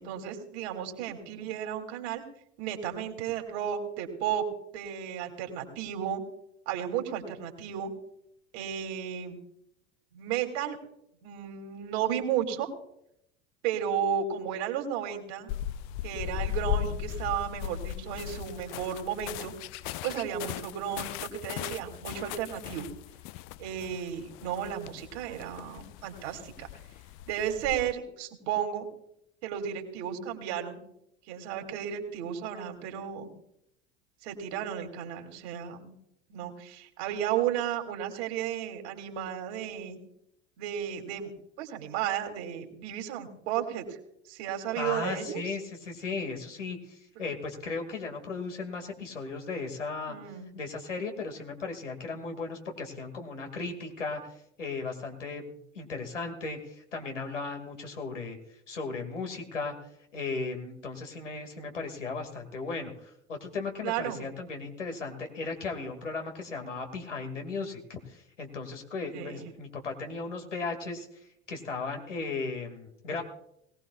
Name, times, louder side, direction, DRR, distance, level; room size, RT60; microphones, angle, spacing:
voice 1, 0.0-2.2 2.6-4.4 4.7-6.2 6.7-7.9 8.5-9.4 10.1-10.8 11.2-12.7 13.6-15.5 16.0-19.5 20.0-22.9 23.6-26.7 27.3-28.9 29.4-30.8 31.3-33.3 34.2-36.0 36.3-40.0 40.6-44.0 44.2-45.4 50.1-50.5 63.8-64.2 69.1-69.5, right 9 dB, 60° right, 5 dB, 2.6 m, -33 dB
sound 1, 15.5-27.9, left 13 dB, 50° left, 0.5 m, -38 dB
voice 2, 44.8-50.2 50.6-59.7 60.1-71.1 71.5-73.2, left 4 dB, 85° left, 4 dB, 2.2 m, -36 dB
21.0 x 18.0 x 2.4 m, 0.76 s
figure-of-eight pair, 70°, 36 cm